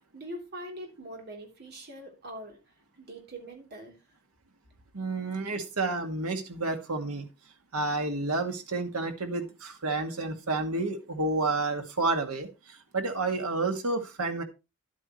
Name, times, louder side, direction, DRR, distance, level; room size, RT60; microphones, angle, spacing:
voice 1, 0.1-2.6 3.0-4.0, right 1 dB, 50° right, 3.4 m, -42 dB
voice 2, 4.9-7.3 7.7-12.5 12.9-14.4, right 3 dB, 85° right, 2.0 m, -30 dB
11.5 x 8.5 x 3.1 m
head